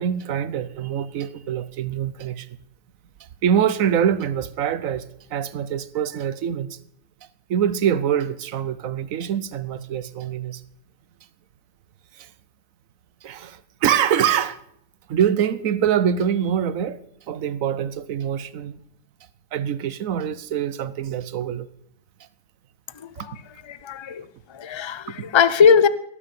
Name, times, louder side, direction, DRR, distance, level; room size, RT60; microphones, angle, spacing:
voice 1, 0.0-2.5 3.4-6.8 7.5-10.6 12.1-12.3 13.2-14.6 15.1-17.0 17.3-18.8 19.5-21.7 23.2-23.3 25.1-25.3, right 9 dB, 75° right, 1.2 m, -24 dB
voice 2, 22.9-23.3 23.6-25.9, left 6 dB, 50° left, 0.3 m, -20 dB
17.5 x 6.7 x 9.1 m
omnidirectional pair, 1.5 m